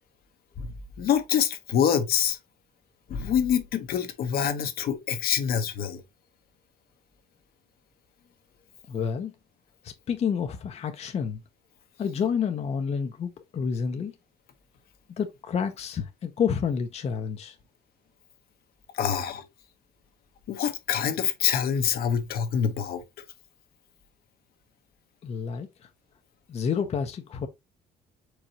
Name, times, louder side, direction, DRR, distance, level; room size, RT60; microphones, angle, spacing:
voice 1, 0.6-2.4 3.1-6.0 18.9-19.4 20.5-23.0, left 8 dB, 65° left, 0.9 m, -26 dB
voice 2, 8.9-9.3 9.8-11.4 12.0-14.1 15.2-17.6 25.2-25.7 26.5-27.5, left 7 dB, 40° left, 0.7 m, -29 dB
4.8 x 3.9 x 2.7 m
cardioid pair, 110°, 17 cm